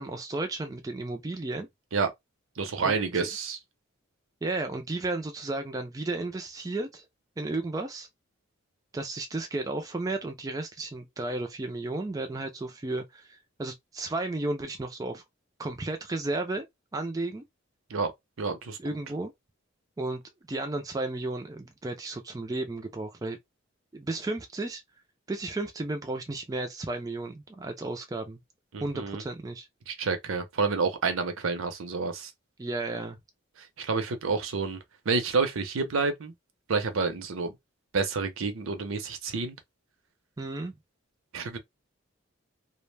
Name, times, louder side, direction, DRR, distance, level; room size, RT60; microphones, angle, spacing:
voice 1, 0.0-1.7 2.8-3.3 4.4-7.1 7.4-8.1 8.9-15.2 15.6-16.7 16.9-17.4 18.8-19.3 20.0-20.2 20.5-23.4 23.9-24.8 25.3-28.4 28.8-29.7 32.6-33.2 40.4-40.8, right 2 dB, 15° right, 0.3 m, -33 dB
voice 2, 2.6-3.6 17.9-18.1 18.4-18.8 28.7-29.2 29.9-32.3 33.6-34.8 35.1-36.3 36.7-37.5 37.9-39.6 41.3-41.6, right 4 dB, 75° right, 0.6 m, -29 dB
2.4 x 2.1 x 3.2 m
head